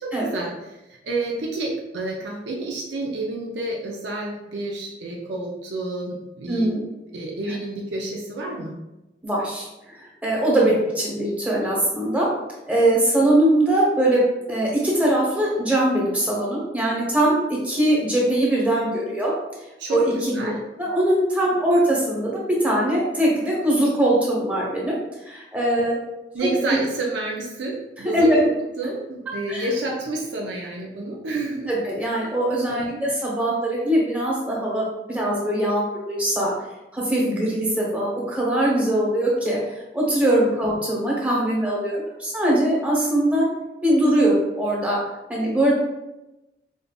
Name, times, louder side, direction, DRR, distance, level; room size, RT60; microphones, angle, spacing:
voice 1, 0.0-6.7 7.1-8.7 19.8-20.6 26.3-28.3 28.8-31.7 32.7-33.0, right 2 dB, 85° right, -2 dB, 0.6 m, -29 dB
voice 2, 6.5-6.8 9.2-12.3 12.7-19.3 19.9-20.5 20.8-24.9 25.2-26.0 26.4-26.5 28.1-28.4 29.5-29.7 31.7-35.8 36.1-36.5 36.9-39.6 39.9-43.4 43.8-45.0 45.3-45.8, right 1 dB, 10° right, -4 dB, 0.9 m, -21 dB
5.0 x 2.5 x 2.3 m, 0.97 s
head